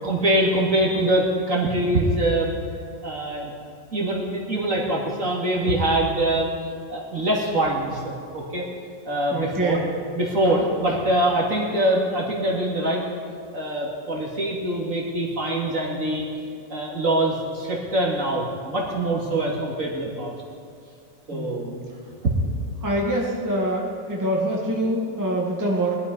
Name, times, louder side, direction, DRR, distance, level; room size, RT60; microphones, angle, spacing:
voice 1, 0.0-2.5 3.0-3.5 3.9-6.5 6.9-8.6 9.0-9.8 10.1-13.0 13.5-16.2 16.7-20.3 21.3-21.9, right 1 dB, 45° right, -3 dB, 2.9 m, -24 dB
voice 2, 9.3-9.9 19.3-19.6 21.3-21.6 22.8-26.0, right 1 dB, 10° right, -3 dB, 2.1 m, -25 dB
21.0 x 12.5 x 5.5 m, 2.4 s
omnidirectional pair, 2.0 m